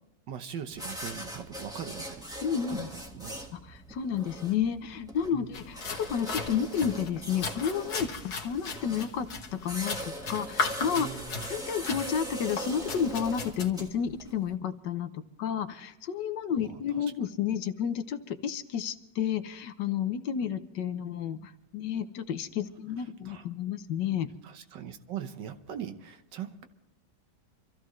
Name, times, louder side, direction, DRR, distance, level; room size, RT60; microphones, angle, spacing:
voice 1, 0.3-2.2 2.7-3.4 5.3-5.5 11.0-11.5 16.6-16.8 23.3-23.5 24.4-26.6, right 8 dB, 85° right, 8 dB, 1.7 m, -41 dB
sound 1, 0.7-14.5, right 1 dB, ahead, 1.4 m, -41 dB
voice 2, 2.4-2.9 3.5-8.1 8.4-9.3 9.5-11.1 11.5-24.3, left 8 dB, 80° left, 10 dB, 1.5 m, -31 dB
sound 2, 5.5-13.7, left 4 dB, 65° left, 1.9 m, -37 dB
26.5 x 14.0 x 3.2 m, 0.97 s
omnidirectional pair, 1.9 m